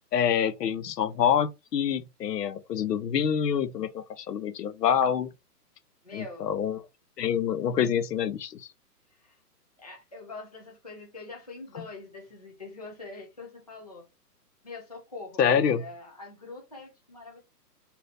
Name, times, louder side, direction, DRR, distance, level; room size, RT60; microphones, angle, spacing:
voice 1, 0.1-5.3 6.1-6.8 7.2-8.6 15.4-15.8, left 8 dB, 85° left, 0.7 m, -26 dB
voice 2, 6.0-6.5 9.2-9.4 9.8-14.0 14.6-17.4, left 3 dB, 25° left, 0.4 m, -44 dB
2.8 x 2.6 x 3.2 m
hypercardioid pair, 170°, 47 cm